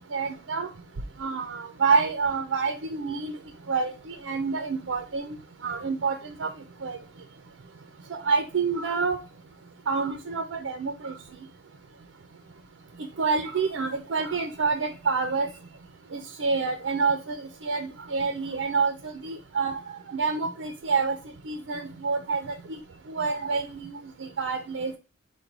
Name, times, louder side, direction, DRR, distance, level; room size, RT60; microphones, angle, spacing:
voice 1, 0.1-0.7 1.2-3.3 3.7-5.4 5.6-6.5 6.8-7.0 8.1-9.2 9.9-11.1 13.2-15.5 16.1-19.8 20.1-21.2 21.5-22.8 23.1-24.9, right 4 dB, 85° right, 6 dB, 0.5 m, -28 dB
5.2 x 2.2 x 4.5 m, 0.31 s
head